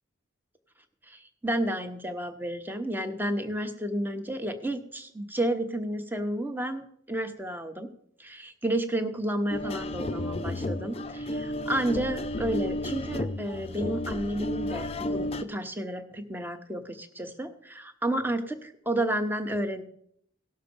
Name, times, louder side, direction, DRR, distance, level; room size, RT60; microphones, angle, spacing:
voice 1, 1.0-7.9 8.2-19.8, right 1 dB, 10° right, 8 dB, 0.8 m, -31 dB
sound 1, 9.5-15.4, left 1 dB, 30° left, 0.4 m, -32 dB
17.5 x 6.6 x 5.3 m, 0.68 s
head